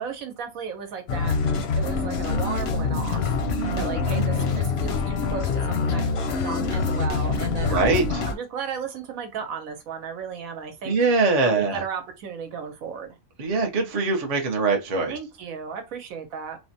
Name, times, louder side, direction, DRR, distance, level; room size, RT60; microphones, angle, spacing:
voice 1, 0.0-3.3 3.8-7.8 8.3-11.0 11.4-13.2 15.1-16.6, right 6 dB, 80° right, 1.2 m, -35 dB
sound 1, 1.1-8.4, left 4 dB, 60° left, 0.7 m, -25 dB
voice 2, 3.4-4.3 7.6-8.3 10.8-11.8 13.4-15.1, right 3 dB, 45° right, 0.5 m, -23 dB
3.3 x 2.1 x 2.7 m
omnidirectional pair, 1.5 m